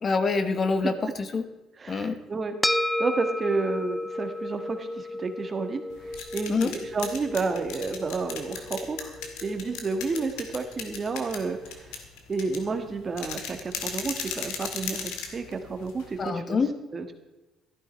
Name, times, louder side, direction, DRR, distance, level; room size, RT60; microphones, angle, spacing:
voice 1, 0.0-1.4 1.9-2.2 6.5-6.7 16.2-16.7, left 4 dB, 40° left, 9 dB, 1.3 m, -26 dB
voice 2, 1.8-9.1 9.4-11.9 12.3-16.6 16.9-17.1, right 4 dB, 35° right, 7 dB, 1.6 m, -31 dB
sound 1, 2.6-11.2, left 1 dB, 5° left, 0.5 m, -33 dB
sound 2, 5.9-16.3, left 7 dB, 90° left, 1.9 m, -37 dB
13.5 x 12.0 x 4.5 m, 1.1 s
supercardioid pair, 85°, 0 cm